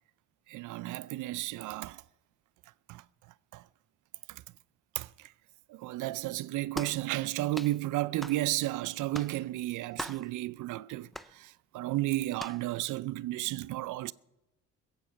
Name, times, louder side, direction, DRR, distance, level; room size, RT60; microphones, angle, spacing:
voice 1, 0.5-2.0 2.9-3.0 3.5-3.6 4.3-4.4 5.0-5.3 5.7-14.1, right 17 dB, 80° right, 0.5 m, -33 dB
sound 1, 6.7-7.0 7.5-7.8 8.2-8.4 9.1-9.4 10.0-10.3 11.1-11.3 12.4-12.6, equal, ahead, 0.4 m, -40 dB
21.5 x 8.2 x 5.7 m
cardioid pair, 90°, 30 cm